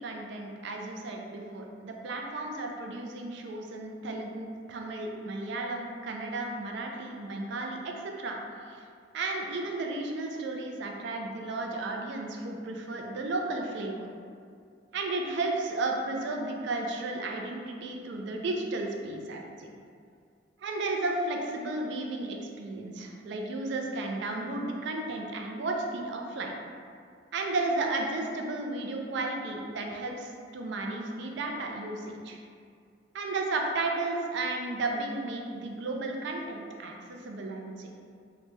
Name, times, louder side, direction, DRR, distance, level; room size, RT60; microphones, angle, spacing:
voice 1, 0.0-8.4 8.7-8.8 9.1-14.1 14.9-19.7 20.6-26.5 27.3-32.4 33.1-37.9, right 2 dB, 65° right, 1 dB, 0.3 m, -33 dB
2.8 x 2.1 x 3.0 m, 2.3 s
head